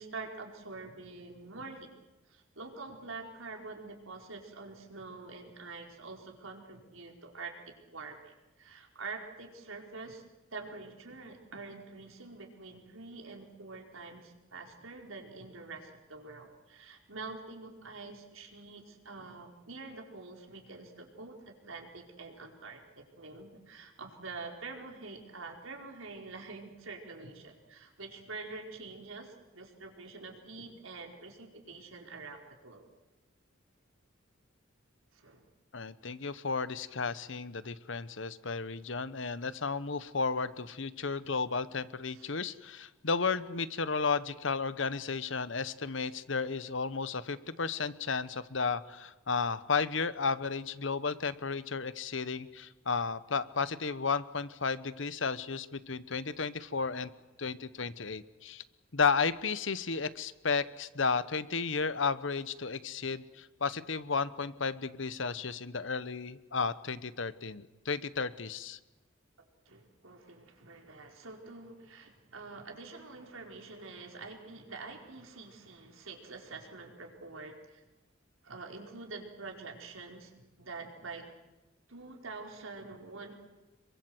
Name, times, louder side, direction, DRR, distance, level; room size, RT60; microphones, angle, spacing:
voice 1, 0.0-1.9 2.3-7.5 7.9-10.2 10.5-32.9 35.1-35.4 42.1-42.3 69.4-77.8 78.4-80.3 80.6-81.3 81.9-83.3, right 3 dB, 85° right, 2 dB, 4.6 m, -46 dB
voice 2, 35.7-57.1 57.4-58.6 58.9-68.8, left 5 dB, 65° left, 15 dB, 1.1 m, -33 dB
27.0 x 23.0 x 8.0 m, 1.1 s
head